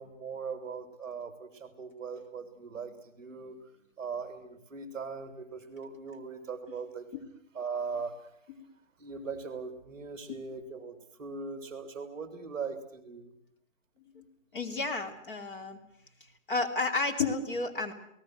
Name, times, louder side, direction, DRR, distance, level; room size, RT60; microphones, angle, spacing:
voice 1, 0.0-3.6 4.0-7.1 7.5-8.3 9.0-13.3, right 5 dB, 10° right, 7 dB, 3.2 m, -40 dB
voice 2, 14.5-15.8 16.5-17.9, left 3 dB, 40° left, 3 dB, 2.7 m, -31 dB
29.5 x 18.5 x 6.4 m, 0.71 s
hypercardioid pair, 170°, 40 cm